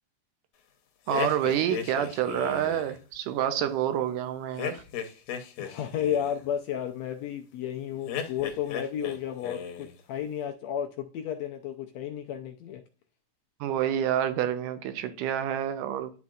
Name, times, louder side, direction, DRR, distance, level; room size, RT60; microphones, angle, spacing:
sound 1, 1.1-2.9 4.6-6.4 8.1-9.2 9.4-10.0, left 8 dB, 65° left, 1.9 m, -35 dB
voice 1, 1.1-4.8 13.6-16.1, right 10 dB, 85° right, 2.3 m, -28 dB
voice 2, 5.6-12.8, left 9 dB, 80° left, 1.6 m, -33 dB
11.5 x 4.3 x 2.4 m
omnidirectional pair, 3.6 m